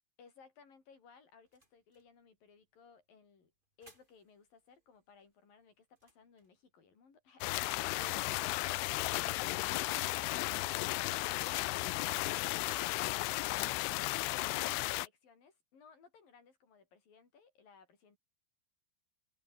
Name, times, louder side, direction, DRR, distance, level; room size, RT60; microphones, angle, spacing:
voice 1, 0.2-3.5 3.8-13.7 14.2-18.2, left 5 dB, 50° left, 7.0 m, -61 dB
sound 1, 0.6-14.1, right 1 dB, 10° right, 7.8 m, -69 dB
sound 2, 7.4-15.1, left 20 dB, 85° left, 3.3 m, -34 dB
omnidirectional pair, 5.5 m